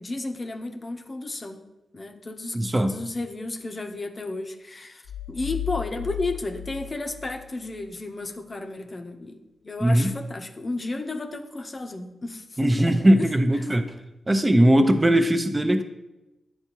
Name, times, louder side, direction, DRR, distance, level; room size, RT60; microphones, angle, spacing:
voice 1, 0.0-1.6 1.9-13.3 13.6-13.7, left 2 dB, 40° left, 4 dB, 0.7 m, -33 dB
voice 2, 2.5-2.9 9.8-10.1 12.6-13.8 14.3-15.8, right 1 dB, 25° right, 7 dB, 0.7 m, -19 dB
sound 1, 5.0-8.0, left 14 dB, 75° left, 1.0 m, -35 dB
9.7 x 3.6 x 3.0 m, 1.0 s
supercardioid pair, 40°, 0 cm